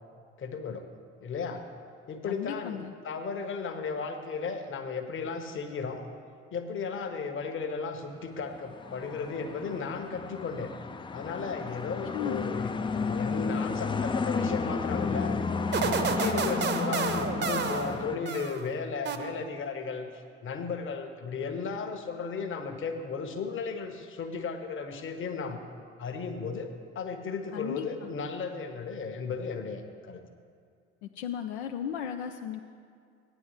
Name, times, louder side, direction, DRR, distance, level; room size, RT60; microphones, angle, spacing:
voice 1, 0.4-0.9 1.2-1.7 2.1-6.1 6.5-10.7 11.1-15.4 15.7-25.6 26.0-30.2, left 5 dB, 35° left, 6 dB, 1.1 m, -35 dB
voice 2, 2.3-2.9 12.1-12.6 27.5-28.1 31.0-32.6, left 8 dB, 75° left, 5 dB, 0.5 m, -35 dB
sound 1, 8.5-18.2, left 4 dB, 15° left, 0.4 m, -32 dB
sound 2, 15.7-18.7 19.1-19.7, right 6 dB, 30° right, 0.8 m, -31 dB
15.0 x 9.5 x 3.2 m, 2.3 s
figure-of-eight pair, 55°, 34 cm